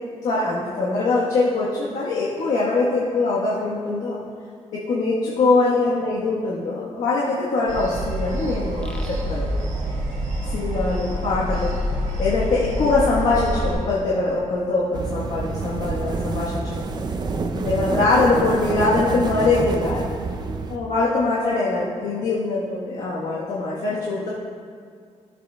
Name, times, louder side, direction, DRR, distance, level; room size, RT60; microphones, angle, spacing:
voice 1, 0.2-4.2 4.7-9.5 10.4-11.8 12.2-16.8 17.6-20.0 20.7-24.3, left 3 dB, 85° left, -7 dB, 1.2 m, -22 dB
sound 1, 7.7-13.7, equal, 85° right, 1.4 m, -27 dB
sound 2, 8.8-11.5, equal, 10° left, 0.6 m, -35 dB
sound 3, 14.9-20.8, right 3 dB, 35° right, 0.5 m, -28 dB
13.5 x 7.4 x 2.2 m, 2.1 s
wide cardioid pair, 150°, 12 cm